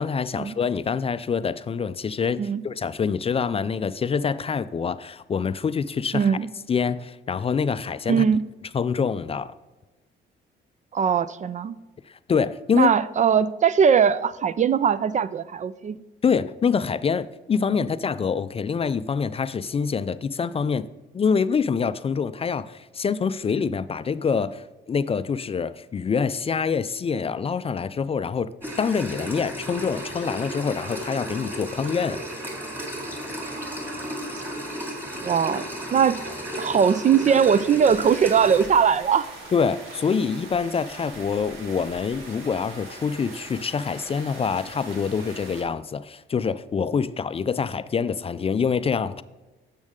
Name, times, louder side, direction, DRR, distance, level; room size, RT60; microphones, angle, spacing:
voice 1, 0.0-6.4 6.7-8.3 8.7-9.5 12.3-12.9 16.2-20.9 21.1-28.5 28.8-32.2 39.5-49.2, left 6 dB, 30° left, 14 dB, 0.4 m, -25 dB
voice 2, 6.1-6.5 8.1-8.4 10.9-11.7 12.7-16.0 17.8-17.9 35.2-35.6 35.9-36.2 36.6-39.3, right 7 dB, 40° right, 16 dB, 0.4 m, -20 dB
sound 1, 28.6-38.7, equal, 10° right, 2.5 m, -34 dB
sound 2, 29.6-37.2, right 2 dB, 70° right, 2.5 m, -43 dB
sound 3, 37.4-45.6, right 2 dB, 85° right, 2.0 m, -42 dB
10.5 x 7.4 x 3.7 m, 1.1 s
cardioid pair, 90°, 20 cm